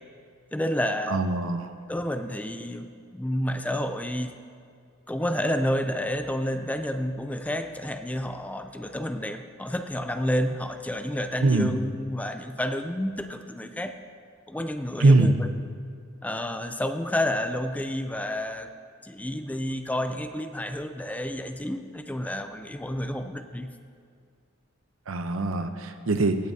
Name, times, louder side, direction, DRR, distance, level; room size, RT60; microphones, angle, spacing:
voice 1, 0.5-1.2 1.9-4.3 5.1-14.0 14.5-15.5 16.2-18.7 19.0-23.7, left 1 dB, 5° left, 8 dB, 0.4 m, -30 dB
voice 2, 1.1-1.7 11.4-11.7 15.0-15.3 25.1-26.4, right 3 dB, 80° right, 8 dB, 0.7 m, -22 dB
17.0 x 11.0 x 2.8 m, 2.3 s
head